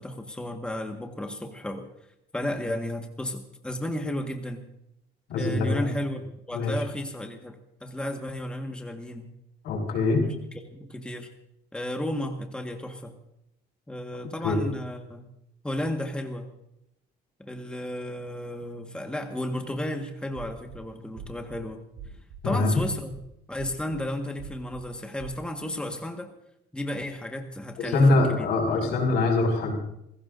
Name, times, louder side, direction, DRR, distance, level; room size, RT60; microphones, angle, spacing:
voice 1, 0.0-1.9 2.3-4.7 5.3-9.3 10.2-11.3 11.7-13.2 13.9-15.3 15.6-16.5 17.4-21.8 22.4-23.2 23.5-26.3 26.7-28.9, left 1 dB, 5° left, 4 dB, 1.5 m, -33 dB
voice 2, 5.3-5.9 6.5-6.7 9.6-10.2 14.4-14.6 22.4-22.8 27.8-29.7, left 2 dB, 80° left, 1 dB, 5.6 m, -23 dB
sound 1, 20.3-20.8 21.2-21.6 22.0-22.4 22.8-23.2 23.6-24.0 24.4-24.8 25.2-25.4, right 6 dB, 75° right, 6.5 m, -42 dB
27.5 x 16.0 x 2.6 m, 0.82 s
cardioid pair, 110°, 17 cm